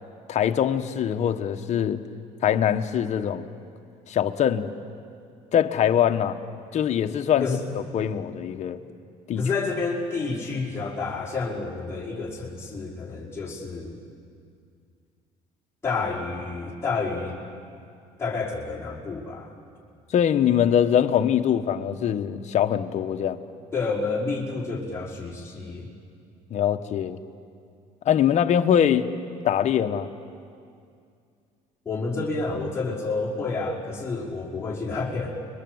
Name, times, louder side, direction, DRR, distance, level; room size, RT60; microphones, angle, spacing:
voice 1, 0.3-2.0 2.4-3.5 4.1-4.7 5.5-6.4 6.7-7.5 7.9-8.8 9.3-9.4 20.1-23.4 26.5-27.2 28.0-29.1 29.4-30.1, left 9 dB, 50° left, 7 dB, 1.3 m, -22 dB
voice 2, 9.4-14.0 15.8-17.4 18.2-19.5 23.7-25.9 31.9-35.3, left 4 dB, 20° left, -7 dB, 5.2 m, -29 dB
30.0 x 22.5 x 8.0 m, 2.3 s
cardioid pair, 95°, 15 cm